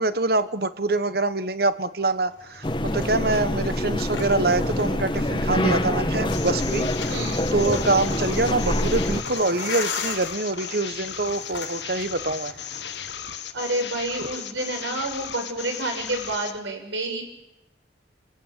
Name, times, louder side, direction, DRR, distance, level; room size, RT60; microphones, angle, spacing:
voice 1, 0.0-6.9 7.5-12.5, right 2 dB, 55° right, 13 dB, 1.2 m, -25 dB
sound 1, 2.3-13.2, left 5 dB, 85° left, 5.4 m, -39 dB
sound 2, 2.6-9.2, left 1 dB, 25° left, 1.3 m, -25 dB
sound 3, 6.3-16.6, left 9 dB, 70° left, 1.6 m, -36 dB
voice 2, 7.0-7.5 13.5-17.2, right 2 dB, 80° right, 3 dB, 6.7 m, -29 dB
29.0 x 17.0 x 9.1 m, 0.89 s
head